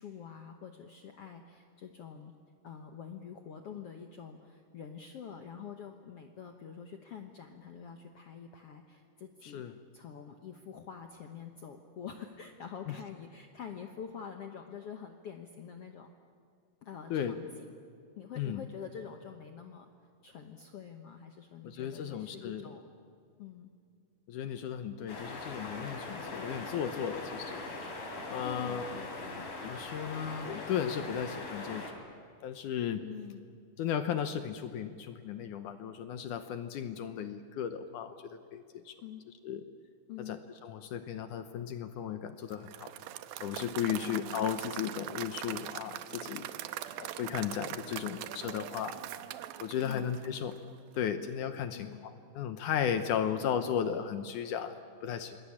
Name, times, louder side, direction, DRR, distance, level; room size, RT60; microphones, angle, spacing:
voice 1, 0.0-2.3 2.6-9.6 9.9-16.1 16.8-17.7 18.2-19.9 20.2-22.9 23.4-23.7 28.4-29.4 33.0-33.5 39.0-39.2 40.1-40.4 43.9-44.5 49.9-50.0 51.7-52.1, left 7 dB, 90° left, 5 dB, 1.3 m, -46 dB
voice 2, 21.6-22.6 24.3-27.6 28.3-29.0 29.6-31.8 32.4-33.0 33.8-38.9 39.4-39.6 40.3-42.9 43.4-46.5 47.0-49.0 49.6-50.6 51.0-55.4, left 8 dB, 70° left, 9 dB, 2.0 m, -35 dB
sound 1, 25.1-31.9, left 2 dB, 40° left, 4.5 m, -41 dB
Applause / Crowd, 42.5-50.7, right 12 dB, 75° right, 2.5 m, -42 dB
27.5 x 21.0 x 8.7 m, 2.3 s
omnidirectional pair, 4.5 m